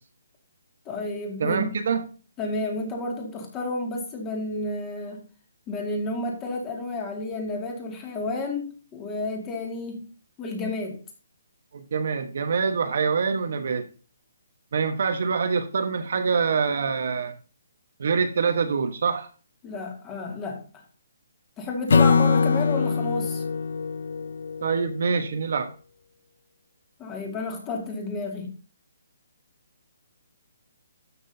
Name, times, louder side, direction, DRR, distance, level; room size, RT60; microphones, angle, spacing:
voice 1, 0.9-1.8 2.4-5.2 5.7-10.1 10.4-11.0 19.6-20.6 21.6-23.4 27.0-28.5, left 2 dB, 15° left, 1 dB, 2.2 m, -31 dB
voice 2, 1.4-2.0 11.7-13.8 14.7-17.3 18.0-19.3 24.6-25.7, right 5 dB, 60° right, 7 dB, 1.2 m, -25 dB
Acoustic guitar / Strum, 21.9-25.2, left 5 dB, 70° left, 0.4 m, -23 dB
12.5 x 6.1 x 2.8 m, 0.37 s
hypercardioid pair, 160°, 0 cm